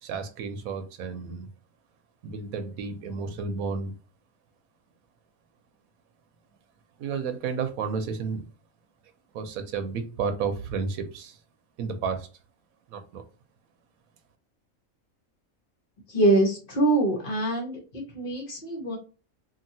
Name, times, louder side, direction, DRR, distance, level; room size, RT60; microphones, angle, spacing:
voice 1, 0.0-1.5 2.2-3.9 7.0-8.4 9.3-11.4 11.8-12.3 12.9-13.2, right 5 dB, 85° right, 8 dB, 1.1 m, -31 dB
voice 2, 16.1-19.0, right 2 dB, 45° left, 0 dB, 1.1 m, -24 dB
2.7 x 2.7 x 2.6 m, 0.35 s
omnidirectional pair, 1.5 m